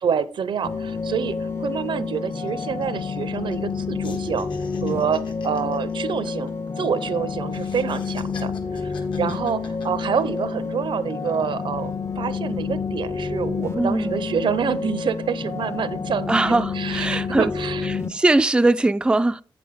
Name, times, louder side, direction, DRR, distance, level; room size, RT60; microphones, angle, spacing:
voice 1, 0.0-4.5 4.8-17.9, right 7 dB, 80° right, 0.7 m, -27 dB
sound 1, 0.6-18.1, left 5 dB, 30° left, 0.6 m, -29 dB
sound 2, 1.2-1.3 1.6-1.8 2.1-3.7 4.0-7.1 7.5-10.6 11.0-11.6, left 4 dB, 75° left, 1.9 m, -46 dB
voice 2, 13.8-14.3 16.3-17.5 17.8-19.4, right 2 dB, 10° right, 0.3 m, -21 dB
8.3 x 7.7 x 3.6 m
cardioid pair, 80°, 8 cm